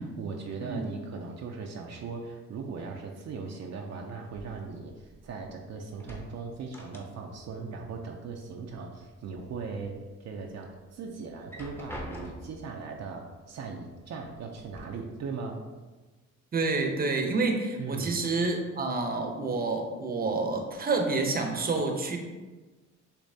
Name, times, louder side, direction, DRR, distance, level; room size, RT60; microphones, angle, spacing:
voice 1, 0.0-15.6 17.8-18.2, right 4 dB, 60° right, 1 dB, 0.6 m, -39 dB
sound 1, 4.4-5.6 5.9-7.5 7.8-8.8 9.2-9.9 10.4-10.5 11.3-12.7 13.6-13.7 14.2-14.8, equal, 5° left, 0.8 m, -45 dB
voice 2, 16.5-22.2, right 3 dB, 30° right, 3 dB, 0.7 m, -28 dB
6.7 x 2.8 x 2.7 m, 1.2 s
cardioid pair, 90°, 30 cm